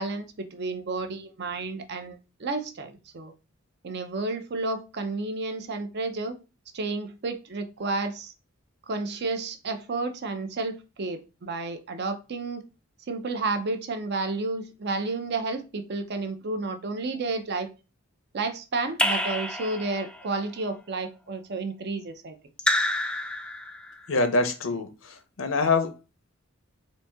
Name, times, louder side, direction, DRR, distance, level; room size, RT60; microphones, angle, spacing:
voice 1, 0.0-3.3 3.8-6.4 6.7-8.3 8.9-12.7 13.1-17.7 18.3-22.4, right 3 dB, 55° right, 0.6 m, -31 dB
Raindrop / Drip, 19.0-20.2 22.6-23.9, left 1 dB, 5° left, 0.3 m, -27 dB
voice 2, 24.1-25.9, left 3 dB, 65° left, 0.6 m, -25 dB
4.0 x 2.7 x 3.4 m
head